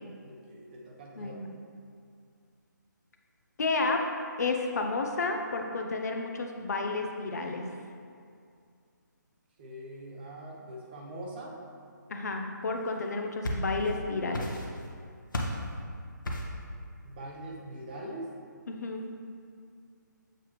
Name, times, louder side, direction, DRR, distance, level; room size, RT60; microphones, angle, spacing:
voice 1, 0.2-1.5 9.6-11.6 17.0-18.3, right 1 dB, 30° right, -2 dB, 0.8 m, -42 dB
voice 2, 1.2-1.5 3.6-4.0 4.4-7.6 12.1-14.5 18.7-19.0, left 3 dB, 55° left, 3 dB, 0.7 m, -31 dB
sound 1, 13.0-14.0 14.3-14.9 15.3-15.7 16.2-16.6, left 1 dB, 80° left, 1.0 m, -33 dB
7.5 x 4.9 x 3.0 m, 2.3 s
hypercardioid pair, 160°, 10 cm